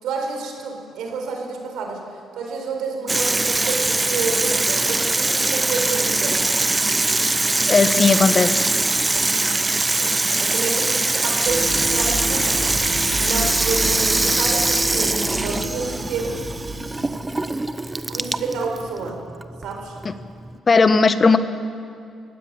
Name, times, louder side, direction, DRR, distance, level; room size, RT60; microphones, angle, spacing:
voice 1, 0.0-6.4 9.8-16.4 18.1-19.2 19.6-20.0, right 4 dB, 85° right, 2 dB, 4.6 m, -29 dB
Water tap faucet / Sink (filling or washing), 3.1-20.6, right 2 dB, 20° right, 0.7 m, -22 dB
voice 2, 7.7-8.6 20.7-21.4, left 4 dB, 35° left, 11 dB, 1.2 m, -16 dB
sound 1, 11.5-17.1, right 1 dB, 45° right, 4.2 m, -31 dB
23.0 x 16.0 x 9.0 m, 2.4 s
cardioid pair, 90°, 0 cm